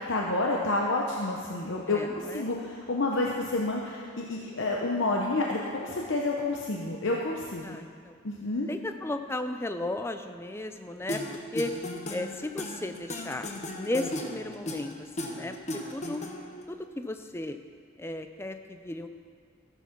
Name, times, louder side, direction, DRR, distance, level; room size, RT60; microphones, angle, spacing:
voice 1, 0.0-2.0 2.3-7.8 8.2-8.7, left 2 dB, 60° left, -1 dB, 0.9 m, -29 dB
voice 2, 1.9-2.5 7.6-8.2 8.7-11.7 12.1-15.5 15.9-16.2 16.7-17.6 18.0-19.1, left 2 dB, 10° left, 7 dB, 0.4 m, -35 dB
sound 1, 11.1-16.6, left 1 dB, 35° left, 0.9 m, -36 dB
14.0 x 7.3 x 5.9 m, 2.1 s
head